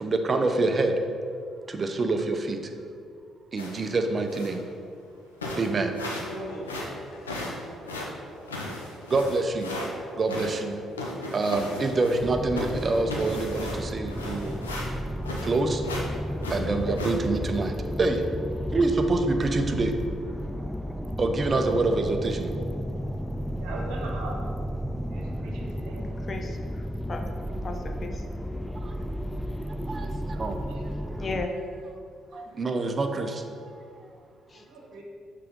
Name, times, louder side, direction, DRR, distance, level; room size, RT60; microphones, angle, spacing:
voice 1, 0.0-0.9 1.7-2.6 3.5-4.6 5.6-5.9 9.1-9.7 10.2-10.8 11.3-14.6 15.4-15.8 16.5-18.2 18.7-19.9 21.2-22.5 29.9-30.1 30.4-30.6 32.3-33.4, right 3 dB, 40° right, 6 dB, 0.6 m, -26 dB
sound 1, 3.6-3.9 4.3-4.6 5.1-5.2 5.4-6.4 6.6-9.9 10.3-12.3 12.5-15.6 15.8-16.1 16.4-17.1, left 1 dB, 85° left, 0.6 m, -35 dB
voice 2, 6.3-7.9 18.5-18.7, equal, 70° left, -1 dB, 1.1 m, -42 dB
sound 2, 12.2-31.5, equal, 5° left, 0.3 m, -33 dB
voice 3, 23.5-24.4 25.1-26.1 30.3-30.9 32.3-32.4 34.5-35.0, right 2 dB, 70° right, -1 dB, 1.0 m, -41 dB
voice 4, 26.3-27.3 27.6-28.2 31.2-31.5 34.5-34.6, left 3 dB, 40° left, 4 dB, 0.7 m, -35 dB
5.6 x 3.8 x 5.1 m, 2.3 s
figure-of-eight pair, 45°, 0 cm